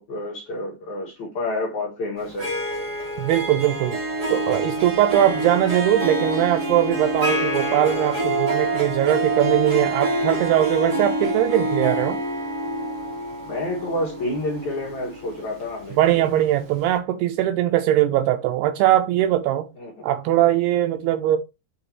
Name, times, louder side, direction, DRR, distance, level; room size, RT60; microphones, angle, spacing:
voice 1, 0.0-2.5 13.4-16.3 19.8-19.9, left 1 dB, 55° left, 2.2 m, -29 dB
Harp, 2.2-16.2, right 1 dB, 35° right, 1.7 m, -26 dB
voice 2, 3.2-4.0 4.3-12.2 16.0-19.7 20.0-21.4, right 12 dB, 85° right, 2.3 m, -21 dB
6.6 x 5.1 x 3.0 m
omnidirectional pair, 5.3 m